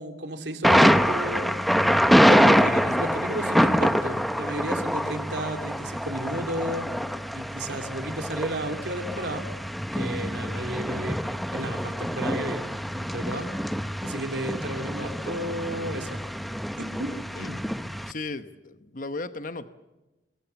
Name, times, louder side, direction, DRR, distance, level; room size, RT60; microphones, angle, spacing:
voice 1, 0.0-1.5 2.3-6.9 7.3-9.5 9.9-11.2 11.5-13.5 14.0-16.2 16.8-17.1 17.4-17.6, right 1 dB, 80° right, 5 dB, 2.9 m, -33 dB
Thunder, 0.6-18.1, equal, ahead, 0.8 m, -25 dB
voice 2, 17.1-17.5 18.1-19.7, left 3 dB, 50° left, 10 dB, 1.0 m, -36 dB
26.0 x 22.5 x 7.0 m, 1.0 s
head